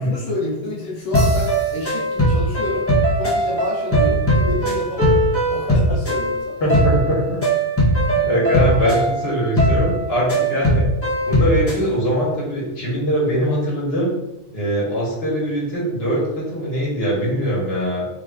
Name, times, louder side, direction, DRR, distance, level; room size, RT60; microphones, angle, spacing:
voice 1, 0.0-2.9 3.1-6.6 8.6-8.7 10.5-10.7, left 2 dB, 90° left, -4 dB, 1.2 m, -29 dB
sound 1, 1.1-11.8, right 1 dB, 10° left, 0.9 m, -19 dB
voice 2, 6.6-7.4 8.1-10.9 11.3-14.1 14.5-18.1, equal, 60° left, -5 dB, 1.5 m, -22 dB
4.3 x 3.5 x 2.4 m, 0.89 s
omnidirectional pair, 1.2 m